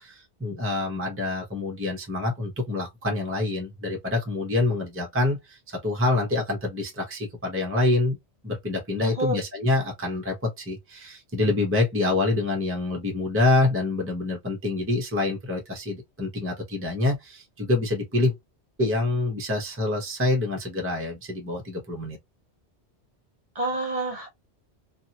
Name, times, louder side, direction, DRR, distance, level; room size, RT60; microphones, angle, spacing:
voice 1, 0.0-8.2 8.4-18.3 18.8-22.2, left 2 dB, 15° right, 0.7 m, -26 dB
voice 2, 9.0-9.4 23.5-24.3, right 1 dB, 35° right, 1.0 m, -28 dB
2.8 x 2.5 x 2.7 m
omnidirectional pair, 1.1 m